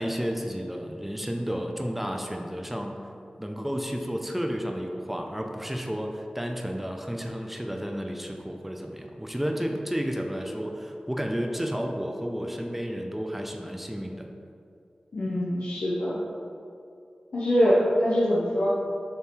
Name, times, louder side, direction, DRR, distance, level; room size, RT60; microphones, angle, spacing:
voice 1, 0.0-3.0 3.4-14.3, equal, 5° right, 3 dB, 0.7 m, -32 dB
voice 2, 15.1-16.2 17.3-18.7, equal, 85° left, -8 dB, 0.8 m, -23 dB
7.0 x 3.1 x 4.5 m, 2.5 s
cardioid pair, 45°, 3 cm